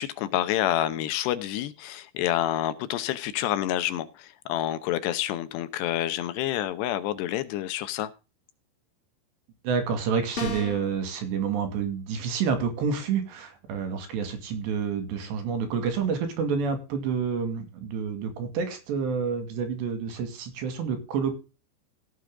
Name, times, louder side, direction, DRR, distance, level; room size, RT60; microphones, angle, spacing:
voice 1, 0.0-8.1, left 12 dB, 75° left, 2.9 m, -28 dB
voice 2, 9.6-21.3, right 6 dB, 75° right, 4.4 m, -28 dB
sound 1, 10.4-10.9, left 2 dB, 35° left, 3.3 m, -33 dB
16.5 x 6.8 x 3.7 m
omnidirectional pair, 5.2 m